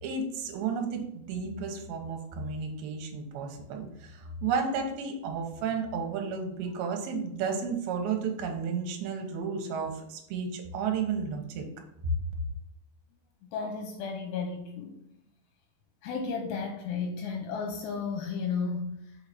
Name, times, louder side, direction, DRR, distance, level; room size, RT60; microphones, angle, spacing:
voice 1, 0.0-11.7 12.0-12.1, right 5 dB, 70° right, 2 dB, 2.6 m, -32 dB
voice 2, 13.4-15.0 16.0-19.2, left 5 dB, 80° left, 3 dB, 2.6 m, -33 dB
6.6 x 4.8 x 4.3 m, 0.82 s
omnidirectional pair, 5.3 m